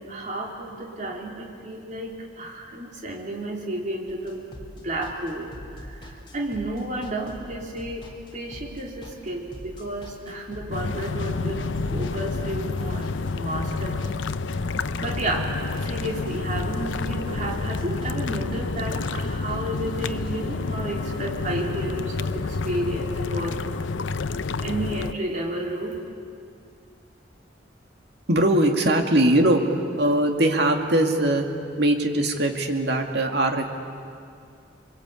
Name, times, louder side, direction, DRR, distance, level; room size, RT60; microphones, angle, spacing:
voice 1, 0.0-4.4 4.8-14.2 14.6-14.7 15.0-15.5 15.8-23.8 24.6-26.0, right 1 dB, 40° right, -1 dB, 3.9 m, -32 dB
sound 1, 4.1-20.5, equal, 25° left, 3.5 m, -43 dB
sound 2, 10.7-25.1, left 3 dB, 85° left, 0.7 m, -29 dB
voice 2, 28.3-29.6 30.0-31.5 31.8-33.7, right 1 dB, 60° right, 3 dB, 2.4 m, -21 dB
28.0 x 23.5 x 8.5 m, 2.4 s
head